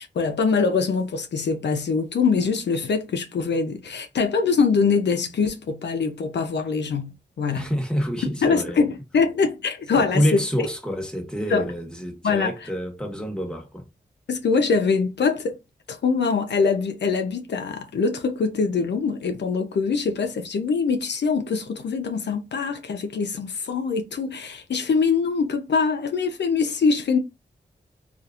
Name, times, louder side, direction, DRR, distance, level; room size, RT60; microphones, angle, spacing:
voice 1, 0.0-7.7 8.4-10.4 11.5-11.7 12.2-12.7 14.3-15.6 15.9-27.2, left 5 dB, 75° left, 0.6 m, -23 dB
voice 2, 7.5-8.8 9.9-13.9, equal, 5° left, 1.1 m, -27 dB
2.7 x 2.5 x 2.3 m
cardioid pair, 40°, 18 cm